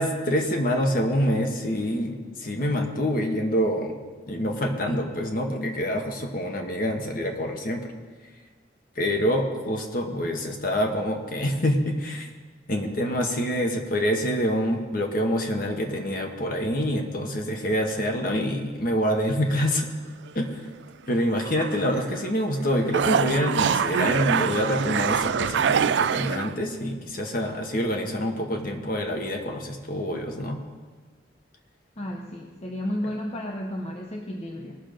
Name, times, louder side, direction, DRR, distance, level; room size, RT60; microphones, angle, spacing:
voice 1, 0.0-3.9 4.3-7.9 9.0-12.3 12.7-19.9 20.3-20.5 21.1-30.6, equal, 50° left, 3 dB, 1.3 m, -26 dB
sound 1, 19.0-19.7 20.3-20.4 21.3-22.3 22.6-26.5, right 7 dB, 70° right, 0.4 m, -25 dB
voice 2, 32.0-34.8, equal, 35° left, 1 dB, 0.8 m, -32 dB
19.0 x 6.4 x 5.2 m, 1.4 s
head